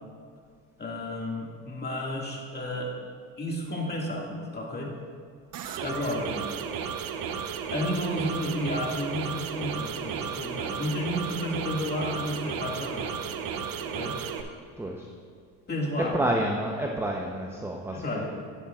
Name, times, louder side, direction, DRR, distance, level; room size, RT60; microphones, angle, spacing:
voice 1, 0.8-2.9 3.4-4.9 5.8-6.4 7.4-13.1 13.8-14.2 15.7-16.2 17.9-18.3, left 1 dB, 20° left, -1 dB, 2.0 m, -32 dB
sound 1, 5.5-14.4, right 7 dB, 50° right, 0.8 m, -34 dB
voice 2, 14.8-15.1 16.1-18.3, right 1 dB, 5° right, 0 dB, 0.7 m, -29 dB
11.5 x 10.0 x 2.4 m, 2.1 s
supercardioid pair, 80°, 45 cm